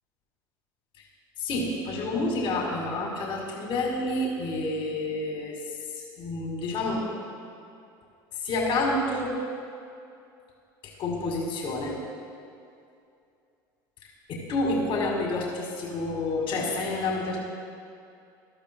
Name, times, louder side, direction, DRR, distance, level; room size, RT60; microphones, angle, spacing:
voice 1, 1.4-5.6 5.9-7.1 8.4-9.3 11.0-11.9 14.3-17.4, left 2 dB, 55° left, -1 dB, 2.1 m, -29 dB
15.0 x 11.5 x 2.2 m, 2.5 s
hypercardioid pair, 85°, 11 cm